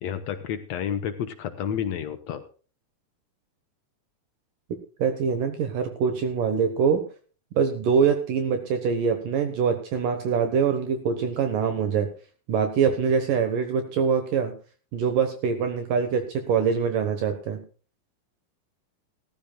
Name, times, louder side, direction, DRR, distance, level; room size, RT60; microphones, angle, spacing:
voice 1, 0.0-2.4, left 8 dB, 70° left, 8 dB, 1.7 m, -30 dB
voice 2, 5.0-7.0 7.5-12.1 12.5-14.5 14.9-17.6, right 6 dB, 70° right, 7 dB, 2.7 m, -24 dB
17.5 x 14.5 x 2.3 m, 0.38 s
omnidirectional pair, 4.3 m